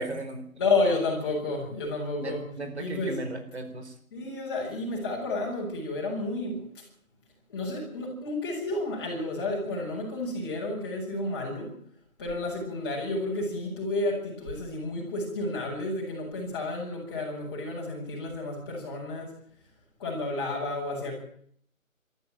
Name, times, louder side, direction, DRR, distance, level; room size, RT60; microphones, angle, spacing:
voice 1, 0.0-0.4 2.2-3.9, right 2 dB, 50° right, 7 dB, 4.6 m, -36 dB
voice 2, 0.6-3.3 4.1-6.8 7.5-11.7 12.2-19.4 20.0-21.2, left 2 dB, 20° left, -3 dB, 6.7 m, -31 dB
22.5 x 13.5 x 9.2 m, 0.64 s
figure-of-eight pair, 165°, 41 cm